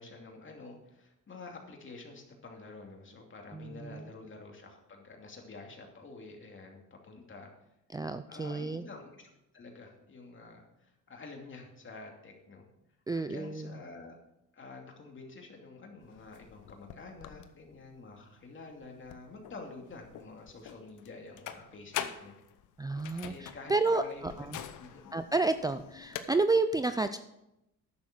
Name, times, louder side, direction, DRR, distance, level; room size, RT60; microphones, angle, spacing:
voice 1, 0.0-7.5 8.3-12.7 13.1-14.2 14.5-22.3 23.2-25.1, left 3 dB, 40° left, 1 dB, 2.7 m, -48 dB
voice 2, 3.5-4.1 7.9-8.8 13.1-13.8 22.8-24.6 25.1-27.2, right 3 dB, 15° right, 10 dB, 0.4 m, -30 dB
sound 1, 16.0-26.3, left 10 dB, 85° left, 0.9 m, -45 dB
10.5 x 7.1 x 6.1 m, 0.88 s
cardioid pair, 90°, 30 cm